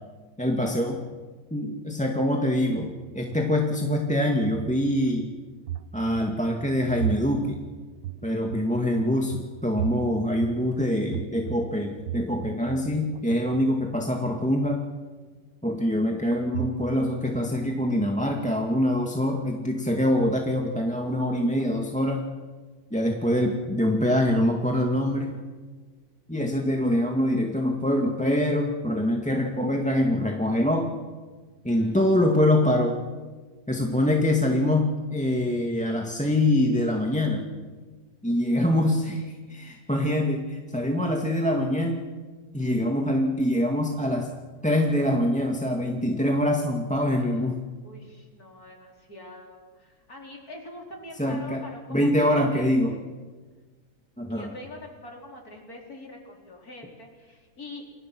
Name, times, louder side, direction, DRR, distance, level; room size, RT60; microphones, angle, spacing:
voice 1, 0.4-1.0 1.5-5.3 5.9-7.6 8.2-14.8 15.6-22.2 22.9-25.4 26.3-30.9 31.6-33.0 33.7-37.5 38.2-42.1 42.5-44.3 44.6-47.6 51.2-51.6 51.9-52.9 54.2-54.5, left 1 dB, 5° left, 2 dB, 1.9 m, -24 dB
sound 1, 2.8-4.0 4.4-5.3 5.7-12.9 13.1-13.6 16.3-17.1 17.3-18.3 21.4-21.7 22.0-22.1, right 10 dB, 60° right, 1.4 m, -36 dB
voice 2, 31.7-32.2 47.0-47.5 47.8-53.0 54.3-57.9, left 2 dB, 45° left, 1 dB, 4.8 m, -44 dB
29.0 x 23.0 x 6.2 m, 1.4 s
omnidirectional pair, 2.1 m